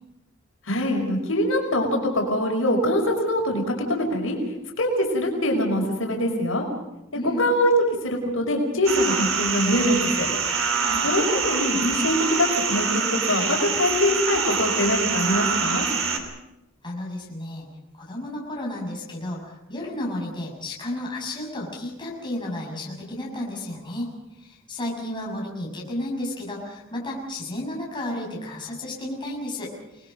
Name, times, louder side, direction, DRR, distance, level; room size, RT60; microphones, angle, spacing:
voice 1, 0.7-4.4 4.8-6.6 7.4-7.7 8.0-10.3 11.0-15.9, left 1 dB, 80° left, 1 dB, 5.4 m, -23 dB
sound 1, 8.8-16.2, right 5 dB, 85° right, 3.3 m, -25 dB
voice 2, 10.7-11.1 16.8-17.7 17.9-24.1 24.4-30.1, left 1 dB, 25° left, -3 dB, 6.6 m, -32 dB
29.5 x 20.5 x 5.3 m, 0.93 s
head